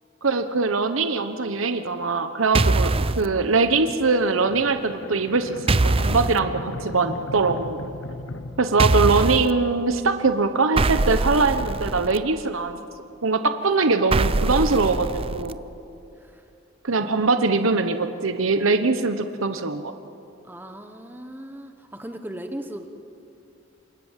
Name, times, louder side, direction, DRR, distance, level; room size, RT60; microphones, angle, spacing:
voice 1, 0.2-7.8 8.6-12.8 13.2-15.6 16.8-19.9, right 3 dB, 90° right, 8 dB, 1.1 m, -22 dB
sound 1, 2.5-3.3 5.7-6.4 8.8-9.5 10.8-12.2 14.1-15.5, right 2 dB, 30° right, 0.6 m, -22 dB
sound 2, 3.7-9.6, left 2 dB, 75° left, 0.9 m, -38 dB
voice 2, 16.1-16.5 20.4-22.9, right 1 dB, 10° right, 6 dB, 1.1 m, -37 dB
28.0 x 26.0 x 7.5 m, 2.7 s
head